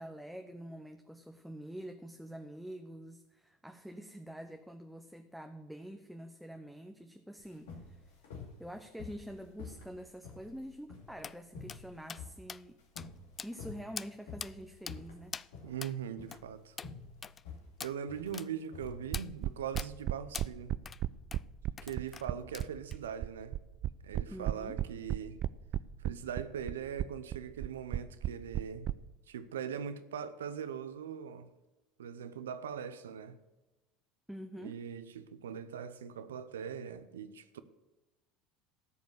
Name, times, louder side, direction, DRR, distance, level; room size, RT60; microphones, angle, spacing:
voice 1, 0.0-8.1 8.6-12.8 13.4-15.3 24.3-24.8 34.3-34.8, equal, ahead, 0.8 m, -46 dB
sound 1, 7.4-19.6, left 4 dB, 75° left, 2.5 m, -49 dB
lighter knocks, 11.2-11.4 11.7-11.8 12.1-12.2 12.5-12.6 13.0-13.1 13.4-13.6 14.0-14.1 14.4-14.5 14.9-15.0 15.3-15.5 15.8-15.9 16.3-16.4 16.8-16.9 17.2-17.4 17.8-17.9 18.3-18.5 19.1-19.3 19.8-19.9 20.3-20.5 20.9-21.0 21.3-21.4 21.8-22.3 22.5-23.0, left 6 dB, 30° left, 0.3 m, -43 dB
voice 2, 15.6-16.8 17.8-20.7 21.8-23.6 24.0-25.4 26.0-28.9 29.3-31.5 32.0-33.4 34.6-37.6, right 8 dB, 85° right, 0.7 m, -41 dB
sound 2, 19.1-28.9, right 12 dB, 50° right, 0.4 m, -34 dB
13.5 x 5.3 x 7.9 m
hypercardioid pair, 75°, 0 cm